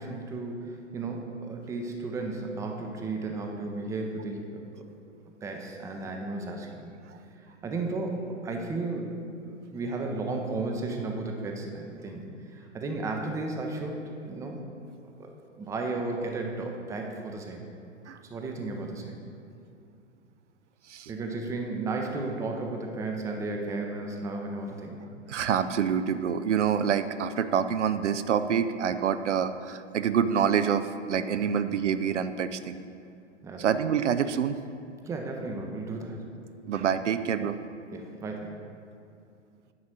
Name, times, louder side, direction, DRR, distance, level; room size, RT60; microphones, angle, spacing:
voice 1, 0.0-4.8 5.4-6.9 7.6-12.2 12.5-14.6 15.2-15.3 15.6-17.6 18.3-19.2 21.1-25.0 31.4-31.6 33.4-33.7 35.0-36.2 37.9-38.6, right 3 dB, 10° right, 2 dB, 0.6 m, -34 dB
voice 2, 25.3-32.8 33.6-34.6 36.7-37.5, right 8 dB, 70° right, 11 dB, 0.5 m, -26 dB
9.8 x 4.1 x 6.4 m, 2.4 s
figure-of-eight pair, 110°, 37 cm